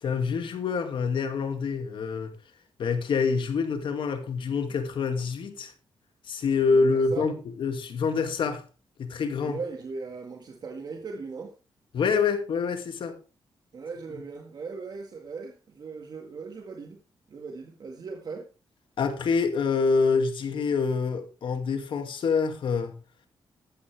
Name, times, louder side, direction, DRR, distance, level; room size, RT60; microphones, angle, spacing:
voice 1, 0.0-2.3 2.8-5.7 6.2-8.6 9.0-9.6 11.9-13.2 19.0-23.0, left 5 dB, 75° left, 2.4 m, -26 dB
voice 2, 6.7-7.3 9.4-11.5 13.7-17.0 17.3-18.5, right 4 dB, 50° right, 1.9 m, -38 dB
15.0 x 12.0 x 3.5 m
wide cardioid pair, 140°, 9 cm